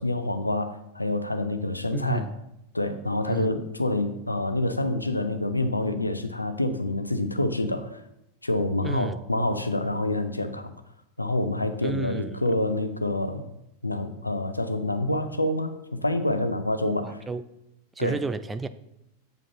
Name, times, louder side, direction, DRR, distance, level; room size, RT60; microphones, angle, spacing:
voice 1, 0.0-2.2 2.7-8.0 8.4-10.7 11.2-13.4 13.8-17.2 18.0-18.2, left 1 dB, 85° left, 0.6 m, -27 dB
voice 2, 1.9-2.4 3.3-3.5 8.8-9.2 11.8-12.4 17.0-17.4 18.0-18.7, right 4 dB, 15° right, 0.4 m, -31 dB
7.9 x 7.4 x 2.9 m
figure-of-eight pair, 90°, 0 cm